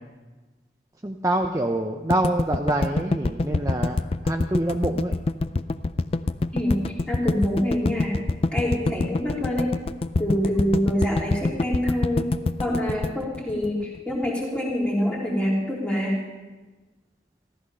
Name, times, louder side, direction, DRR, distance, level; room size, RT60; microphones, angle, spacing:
voice 1, 1.0-5.1, right 1 dB, 15° right, 3 dB, 0.6 m, -26 dB
sound 1, 2.1-14.3, left 3 dB, 30° left, 0.3 m, -25 dB
voice 2, 6.5-8.2 8.5-9.7 10.2-12.3 12.6-16.2, equal, 5° left, -4 dB, 3.0 m, -25 dB
14.5 x 13.5 x 5.5 m, 1.3 s
head